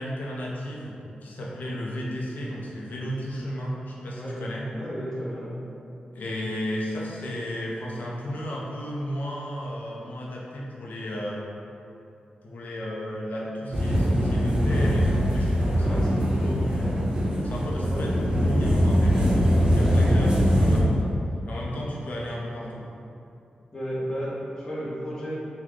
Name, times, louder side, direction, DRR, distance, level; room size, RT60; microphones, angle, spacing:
voice 1, 0.0-4.7 6.1-11.4 12.4-17.0 17.4-21.0 21.4-22.9, equal, 70° left, -4 dB, 0.6 m, -33 dB
voice 2, 4.7-5.6 15.8-16.6 17.9-18.1 23.7-25.4, equal, 20° left, -7 dB, 0.8 m, -33 dB
sound 1, 13.7-20.8, equal, 30° right, 0.6 m, -22 dB
3.6 x 2.2 x 3.1 m, 2.7 s
wide cardioid pair, 90°, 3 cm